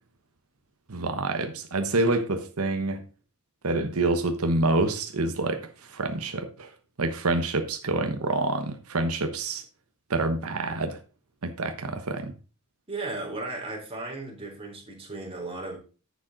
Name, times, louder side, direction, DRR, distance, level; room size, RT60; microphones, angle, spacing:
voice 1, 0.9-3.0 3.6-6.7 7.0-9.6 10.1-11.0 11.4-12.3, right 2 dB, 85° right, 1.1 m, -27 dB
voice 2, 12.9-15.8, right 2 dB, 25° right, 3.2 m, -35 dB
10.0 x 7.3 x 3.9 m
head